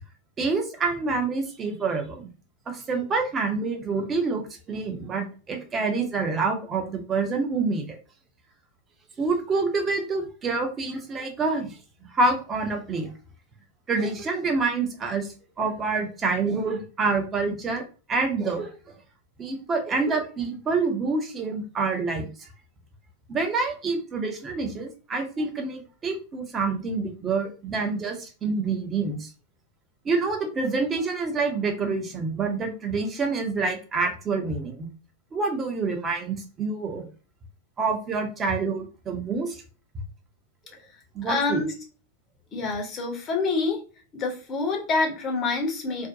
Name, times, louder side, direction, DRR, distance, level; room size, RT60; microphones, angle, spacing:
voice 1, 0.4-2.3 2.7-8.0 9.2-11.8 12.1-13.1 13.9-17.8 18.1-18.7 19.4-22.5 23.3-29.3 30.0-34.9 35.3-37.1 37.8-39.6 41.1-41.6, right 4 dB, 25° right, 4 dB, 0.6 m, -27 dB
voice 2, 41.2-41.7 42.5-43.8 44.1-46.1, left 3 dB, 30° left, 1 dB, 0.7 m, -26 dB
2.5 x 2.1 x 2.5 m, 0.36 s
figure-of-eight pair, 90°, 0 cm